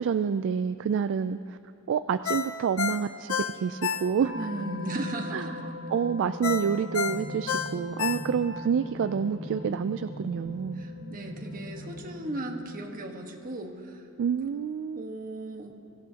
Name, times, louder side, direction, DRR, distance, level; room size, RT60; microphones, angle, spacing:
voice 1, 0.0-1.6 1.9-4.3 5.3-5.6 5.9-10.8 14.2-15.1, right 7 dB, 55° right, 11 dB, 0.3 m, -28 dB
Ringtone, 2.2-4.5 4.9-5.0 6.4-8.7 9.1-9.2, left 7 dB, 65° left, 0.7 m, -31 dB
sound 1, 4.2-12.8, left 2 dB, 15° right, 3.0 m, -41 dB
voice 2, 4.3-5.5 10.8-14.1 14.4-14.6 15.0-15.7, right 2 dB, 40° right, 2 dB, 1.3 m, -36 dB
sound 2, 7.0-12.2, equal, 50° left, 1.6 m, -43 dB
23.5 x 16.5 x 2.8 m, 2.9 s
head